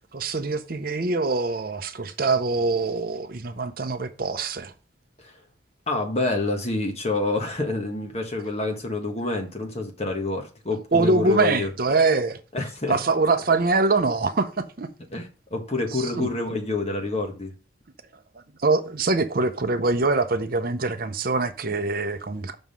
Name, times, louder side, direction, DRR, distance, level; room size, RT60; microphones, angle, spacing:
voice 1, 0.1-4.7 10.9-12.4 12.9-14.9 15.9-16.3 18.6-22.6, right 3 dB, 45° right, 0.6 m, -24 dB
voice 2, 5.9-11.7 12.5-13.0 15.1-17.5, left 2 dB, 30° left, 1.5 m, -27 dB
6.1 x 5.5 x 5.6 m
head